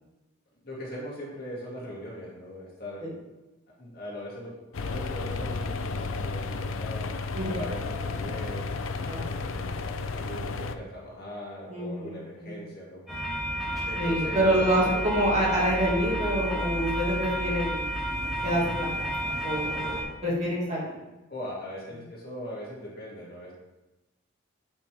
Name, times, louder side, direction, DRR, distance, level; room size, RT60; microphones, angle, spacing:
voice 1, 0.6-3.0 3.8-7.1 7.5-13.0 13.9-14.4 14.7-15.2 21.3-23.5, equal, 45° left, -5 dB, 2.5 m, -40 dB
sound 1, 4.7-10.7, left 4 dB, 70° left, 0.5 m, -32 dB
voice 2, 9.1-9.5 11.7-12.7 14.0-17.8 18.4-20.9, right 1 dB, 30° right, -5 dB, 2.3 m, -27 dB
sound 2, 13.1-20.0, equal, ahead, 2.4 m, -31 dB
8.5 x 7.2 x 3.5 m, 1.0 s
head